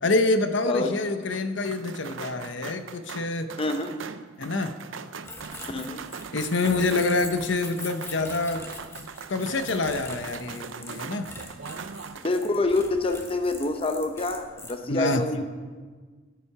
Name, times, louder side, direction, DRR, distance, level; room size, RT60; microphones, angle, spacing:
voice 1, 0.0-3.5 4.4-4.7 6.3-8.6 9.3-11.3 14.9-15.2, left 2 dB, 65° left, 8 dB, 0.8 m, -26 dB
voice 2, 0.7-1.0 3.6-3.9 5.7-6.0 12.2-15.5, left 2 dB, 30° left, 6 dB, 0.7 m, -27 dB
sound 1, 1.3-12.3, right 5 dB, 80° right, 0.6 m, -40 dB
sound 2, 5.2-14.7, left 2 dB, 15° left, 1.1 m, -43 dB
14.5 x 10.5 x 4.7 m, 1.5 s
head